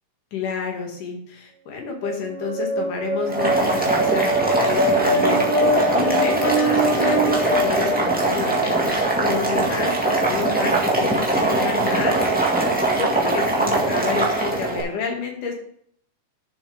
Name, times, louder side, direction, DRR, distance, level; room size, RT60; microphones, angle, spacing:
voice 1, 0.3-12.2 12.9-15.5, left 6 dB, 75° left, 2 dB, 3.6 m, -29 dB
sound 1, 1.9-8.8, right 1 dB, 55° right, 2.3 m, -23 dB
Boiling, 3.2-14.8, right 2 dB, 5° right, 0.7 m, -21 dB
11.0 x 7.3 x 3.5 m, 0.63 s
omnidirectional pair, 3.7 m